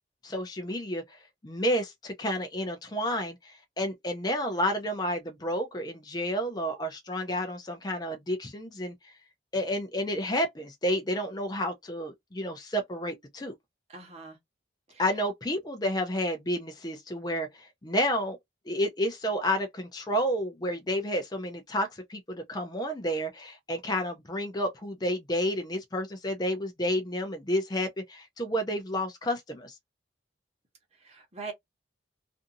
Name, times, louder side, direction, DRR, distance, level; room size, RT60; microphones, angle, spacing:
voice 1, 0.2-1.2 1.4-8.9 9.5-13.5 15.0-18.4 18.7-29.7, equal, 20° left, 0.5 m, -30 dB
voice 2, 13.9-14.4 14.9-15.0 31.0-31.5, right 4 dB, 35° right, 1.0 m, -42 dB
2.5 x 2.5 x 2.6 m
head